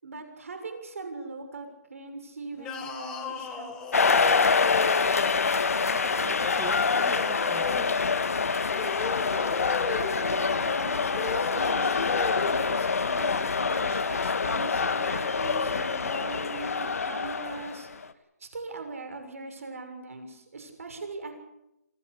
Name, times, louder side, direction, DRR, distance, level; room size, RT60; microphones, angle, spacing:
voice 1, 0.0-4.2 9.9-17.9 18.4-21.3, right 3 dB, 60° right, 6 dB, 6.6 m, -40 dB
sound 1, 2.6-5.3 6.4-7.9 8.7-10.2 11.1-12.6, left 5 dB, 10° left, 2.1 m, -36 dB
sound 2, 3.9-18.1, left 5 dB, 65° left, 1.7 m, -26 dB
voice 2, 5.8-8.0, right 4 dB, 10° right, 3 dB, 1.4 m, -43 dB
26.5 x 16.0 x 8.4 m, 0.86 s
hypercardioid pair, 170°, 9 cm